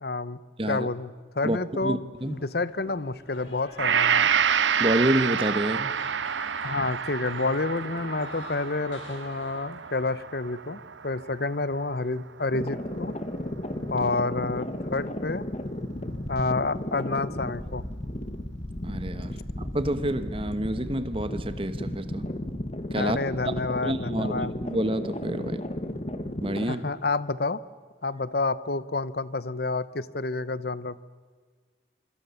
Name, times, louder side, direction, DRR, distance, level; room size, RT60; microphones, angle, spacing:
voice 1, 0.0-0.4 0.7-2.0 2.3-4.3 6.6-13.1 13.9-15.4 16.3-17.8 22.9-24.5 26.6-27.6 28.0-31.0, left 3 dB, 55° left, 17 dB, 0.9 m, -29 dB
voice 2, 1.4-2.4 4.8-6.0 14.0-14.1 18.8-22.3 22.9-23.2 23.5-23.6 23.8-25.6 26.4-26.9, right 1 dB, 30° right, 12 dB, 1.3 m, -28 dB
sound 1, 2.2-10.1, left 1 dB, 90° left, 7.2 m, -48 dB
Gong, 3.8-12.1 12.5-12.6, right 7 dB, 75° right, 0.8 m, -28 dB
sound 2, 12.5-26.6, left 1 dB, 35° left, 1.4 m, -34 dB
25.5 x 25.0 x 7.1 m, 1.5 s
head